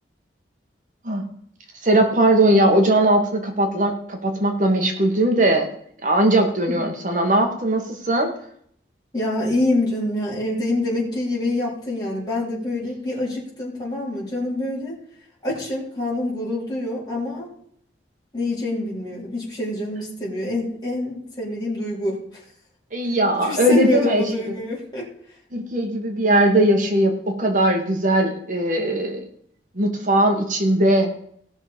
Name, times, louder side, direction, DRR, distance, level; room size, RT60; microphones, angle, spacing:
voice 1, 1.8-5.7 6.0-8.3 22.9-24.2 25.5-29.2 29.8-31.1, right 1 dB, 45° right, 3 dB, 1.9 m, -19 dB
voice 2, 9.1-15.0 15.4-17.5 18.3-22.2 23.4-25.1, left 1 dB, 20° left, -6 dB, 4.1 m, -26 dB
17.0 x 6.3 x 5.3 m, 0.65 s
head